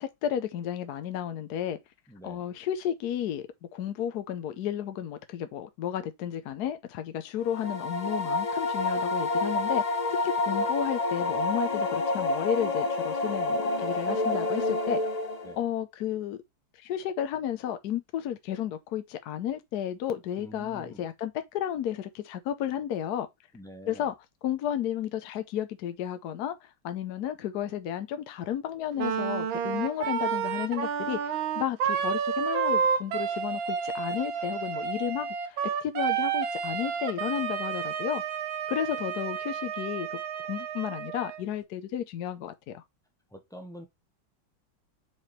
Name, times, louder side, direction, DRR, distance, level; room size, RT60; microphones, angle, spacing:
voice 1, 0.0-1.8 2.2-15.0 15.6-16.4 16.8-23.3 23.9-24.1 24.4-38.2 38.7-40.2 40.5-42.8, left 10 dB, 65° left, 1.1 m, -33 dB
voice 2, 2.1-2.4 15.4-15.6 20.4-21.1 23.5-24.1 43.3-43.9, equal, 5° left, 0.7 m, -46 dB
sound 1, 7.5-15.6, left 2 dB, 40° left, 0.5 m, -28 dB
Wind instrument woodwind instrument, 29.0-41.4, right 7 dB, 90° right, 1.8 m, -30 dB
4.9 x 4.9 x 4.1 m
omnidirectional pair, 2.1 m